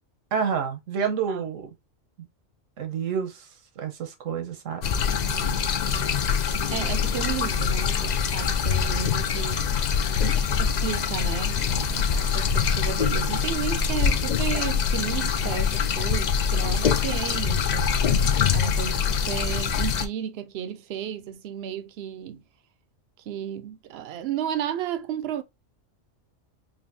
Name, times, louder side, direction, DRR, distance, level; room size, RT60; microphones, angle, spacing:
voice 1, 0.3-1.7 2.8-3.5 3.8-4.8, right 6 dB, 85° right, 1.2 m, -28 dB
sound 1, 4.8-20.1, left 6 dB, 70° left, 0.4 m, -24 dB
voice 2, 5.2-9.8 10.1-22.4 23.3-25.4, right 9 dB, 65° right, 0.7 m, -33 dB
4.8 x 2.6 x 2.6 m
omnidirectional pair, 1.3 m